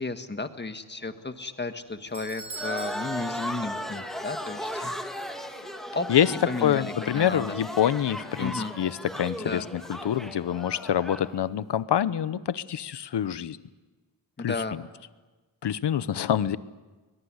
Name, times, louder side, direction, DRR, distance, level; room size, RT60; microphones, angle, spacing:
voice 1, 0.0-5.0 5.7-7.6 8.4-8.7 9.4-9.7 14.4-14.8, left 3 dB, 25° left, 8 dB, 1.6 m, -34 dB
sound 1, 0.9-11.3, left 4 dB, 90° left, 7.7 m, -49 dB
Doorbell, 1.7-4.2 4.5-4.6 5.3-5.4, right 3 dB, 70° right, 4.7 m, -43 dB
sound 2, 2.5-11.3, equal, ahead, 1.7 m, -36 dB
voice 2, 6.6-13.6 14.4-14.8 15.6-16.6, left 10 dB, 70° left, 16 dB, 0.9 m, -26 dB
22.0 x 21.0 x 9.7 m, 1.2 s
wide cardioid pair, 110°, 43 cm